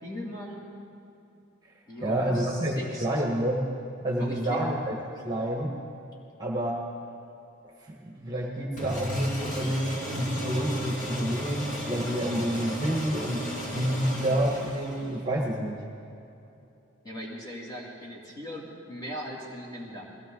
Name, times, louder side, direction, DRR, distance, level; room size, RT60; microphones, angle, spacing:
voice 1, 0.0-0.7 1.9-3.1 4.2-4.7 17.0-20.1, equal, 20° left, -4 dB, 2.6 m, -39 dB
voice 2, 2.0-3.7 4.0-5.0 5.2-5.7 6.4-6.8 7.6-13.4 13.7-15.8, right 1 dB, 20° right, -2 dB, 1.5 m, -28 dB
sound 1, 8.8-15.3, equal, 40° left, 2.2 m, -35 dB
21.0 x 16.0 x 3.9 m, 2.7 s
head